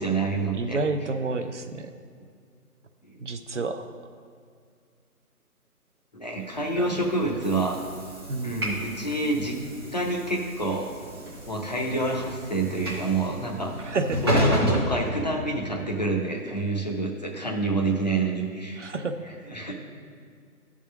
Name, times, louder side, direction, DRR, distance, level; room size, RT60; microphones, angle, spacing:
voice 1, 0.0-0.8 3.0-3.2 6.1-7.8 8.4-9.5 9.9-10.9 11.5-13.7 14.2-18.8 19.2-19.7, right 2 dB, 30° left, 0 dB, 0.6 m, -27 dB
voice 2, 0.5-1.9 3.2-3.9 6.8-6.9 8.3-8.6 13.8-14.3 18.8-19.2, right 3 dB, 55° right, 7 dB, 0.5 m, -29 dB
Train / Sliding door, 6.5-15.8, equal, 15° right, 0.8 m, -31 dB
10.5 x 3.7 x 5.9 m, 2.1 s
figure-of-eight pair, 150°, 45 cm